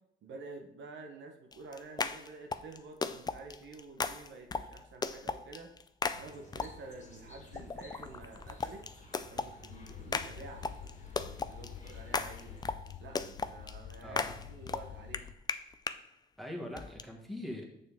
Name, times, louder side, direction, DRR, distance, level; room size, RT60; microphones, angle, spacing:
voice 1, 0.2-5.7 6.2-8.9 9.3-10.7 11.1-12.5 13.0-15.3, right 3 dB, 70° right, 3 dB, 1.0 m, -49 dB
sound 1, 1.5-7.0 7.5-16.0 16.8-17.0, left 4 dB, 20° left, 0.4 m, -37 dB
sound 2, 6.1-12.7, left 2 dB, 35° left, 1.8 m, -55 dB
sound 3, 9.7-15.3, left 10 dB, 65° left, 0.6 m, -48 dB
voice 2, 14.0-14.4 16.4-17.7, left 1 dB, ahead, -1 dB, 1.7 m, -42 dB
6.8 x 6.5 x 3.6 m, 0.80 s
cardioid pair, 90°, 20 cm